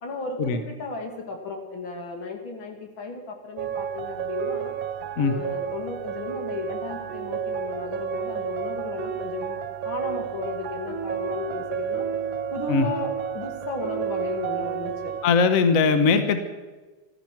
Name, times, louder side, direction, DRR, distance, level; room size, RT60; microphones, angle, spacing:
voice 1, 0.0-4.7 5.2-12.1 12.5-15.1, left 3 dB, 80° left, 3 dB, 2.9 m, -34 dB
sound 1, 3.6-15.3, right 8 dB, 75° right, 1.5 m, -31 dB
voice 2, 15.2-16.4, left 5 dB, 50° left, 10 dB, 1.3 m, -20 dB
15.0 x 14.0 x 5.9 m, 1.2 s
omnidirectional pair, 2.1 m